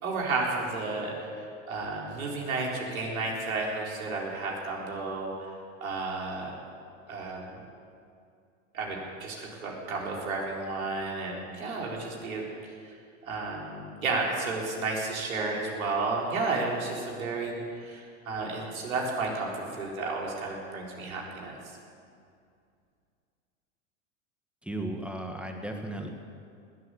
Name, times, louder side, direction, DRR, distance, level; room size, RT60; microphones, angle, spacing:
voice 1, 0.0-5.3 5.8-6.6 7.1-7.6 8.7-12.4 12.8-12.9 13.3-21.6, right 3 dB, 85° right, -2 dB, 4.1 m, -32 dB
voice 2, 24.6-26.1, right 1 dB, 5° right, 3 dB, 1.8 m, -35 dB
20.0 x 8.0 x 8.4 m, 2.3 s
hypercardioid pair, 100°, 41 cm